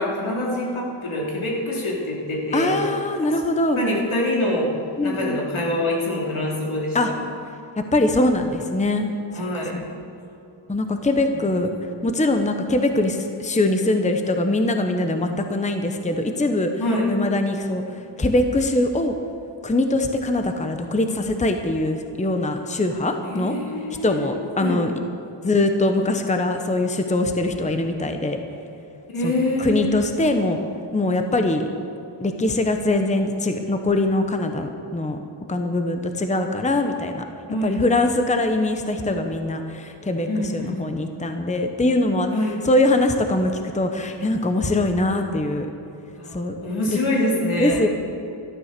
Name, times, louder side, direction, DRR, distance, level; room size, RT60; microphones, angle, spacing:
voice 1, 0.0-2.8 3.8-4.7 5.0-7.0 9.3-9.8 11.3-11.4 16.8-17.1 23.2-24.3 24.6-24.8 29.1-30.0 37.5-37.8 40.3-40.8 42.3-42.5 46.2-47.8, left 1 dB, 80° left, -3 dB, 3.4 m, -25 dB
voice 2, 2.5-3.8 5.0-5.4 6.9-7.1 7.8-9.1 9.7-9.8 10.7-11.7 12.0-16.7 17.1-19.1 19.6-23.5 24.0-24.9 25.4-28.4 29.2-29.3 29.6-30.6 30.9-31.7 32.2-35.2 35.5-37.2 37.6-42.3 42.6-45.7 46.3-46.6 46.9-47.0 47.6-47.9, left 2 dB, 15° left, 6 dB, 0.9 m, -22 dB
13.5 x 12.0 x 6.7 m, 2.8 s
wide cardioid pair, 120°, 48 cm